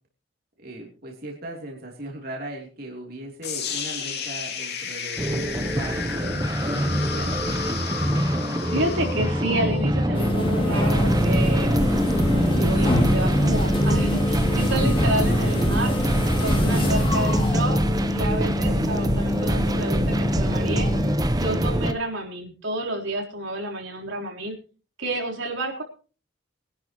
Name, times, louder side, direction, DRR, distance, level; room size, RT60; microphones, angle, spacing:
voice 1, 0.6-7.6 18.5-18.6, right 1 dB, 50° right, 0 dB, 3.2 m, -38 dB
sound 1, 3.4-11.5, left 5 dB, 50° left, 3.0 m, -33 dB
sound 2, 5.2-21.9, equal, 20° right, 0.9 m, -24 dB
voice 2, 8.6-11.7 12.3-15.9 16.4-17.8 18.1-20.9 21.3-24.6 25.0-25.8, right 1 dB, 70° right, 0 dB, 3.7 m, -30 dB
sound 3, 10.1-21.2, left 1 dB, 25° left, 2.5 m, -26 dB
23.0 x 11.0 x 3.0 m, 0.37 s
head